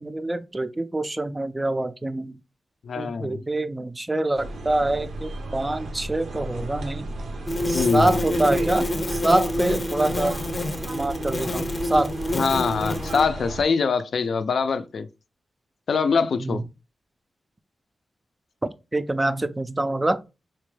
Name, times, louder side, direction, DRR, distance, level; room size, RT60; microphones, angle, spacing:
voice 1, 0.0-2.4 3.0-7.1 7.7-10.3 10.9-12.1 16.4-16.6 18.9-20.2, right 2 dB, 20° right, 0.3 m, -25 dB
voice 2, 2.8-3.4 7.7-8.2 12.3-15.1 15.9-16.6, left 5 dB, 65° left, 0.4 m, -23 dB
sound 1, 4.3-13.6, right 2 dB, 90° right, 0.7 m, -35 dB
sound 2, 7.5-13.3, left 1 dB, 25° left, 0.6 m, -27 dB
4.1 x 2.2 x 3.1 m
wide cardioid pair, 105°, 0 cm